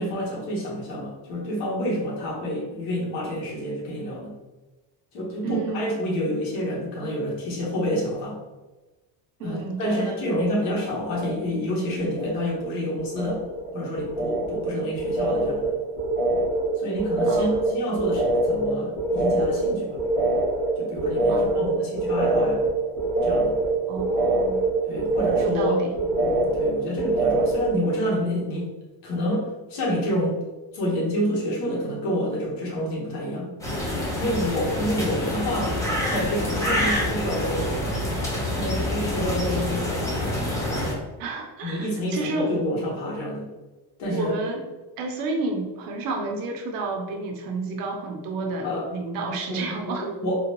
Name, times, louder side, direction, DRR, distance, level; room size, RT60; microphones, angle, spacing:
voice 1, 0.0-4.3 5.1-8.4 9.4-13.4 13.7-15.7 16.8-20.0 20.8-22.6 23.2-23.5 24.8-25.8 26.2-28.7 29.0-30.4 30.7-33.5 34.2-35.8 36.1-37.9 38.5-40.4 41.6-43.5 44.0-44.3 48.6-48.8 49.5-49.6 50.0-50.4, equal, 75° left, -3 dB, 1.3 m, -28 dB
voice 2, 5.4-6.0 9.4-10.2 17.3-17.8 21.3-21.9 23.9-24.6 25.4-25.9 41.2-42.6 44.1-44.7 45.0-50.1, right 3 dB, 55° right, 2 dB, 0.6 m, -31 dB
sound 1, 10.1-10.7 11.0-11.7 12.0-27.7, right 2 dB, 45° left, 1.3 m, -25 dB
sound 2, 33.6-40.9, left 1 dB, 10° left, 0.3 m, -27 dB
3.7 x 2.2 x 2.9 m, 1.1 s
cardioid pair, 170°, 41 cm